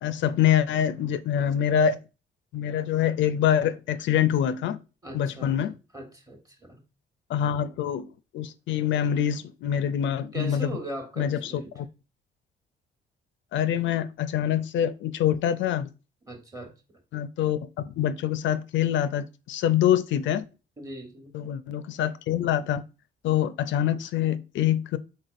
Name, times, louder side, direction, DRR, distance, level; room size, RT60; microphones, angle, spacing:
voice 1, 0.0-2.0 2.5-4.8 5.1-5.7 7.3-8.1 8.3-10.7 11.2-11.9 13.5-15.9 17.1-20.4 21.3-22.8 23.2-25.0, left 10 dB, 70° left, 0.4 m, -25 dB
voice 2, 5.0-5.6 5.9-6.8 10.3-11.8 16.3-16.7 20.8-21.4, right 1 dB, 15° right, 1.2 m, -39 dB
4.0 x 3.8 x 2.5 m
cardioid pair, 90°, 20 cm